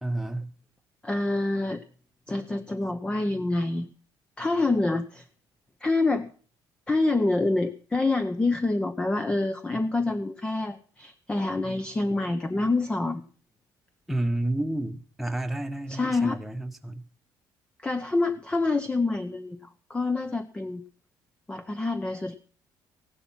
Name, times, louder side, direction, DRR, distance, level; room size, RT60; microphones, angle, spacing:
voice 1, 0.0-0.5 14.1-17.0, right 1 dB, 5° right, 1.3 m, -30 dB
voice 2, 1.0-1.8 2.3-3.9 4.4-5.2 5.8-6.3 6.9-13.2 15.9-16.4 17.8-20.8 21.5-22.3, left 2 dB, 10° left, 0.8 m, -27 dB
16.5 x 11.5 x 5.8 m
cardioid pair, 155°, 8 cm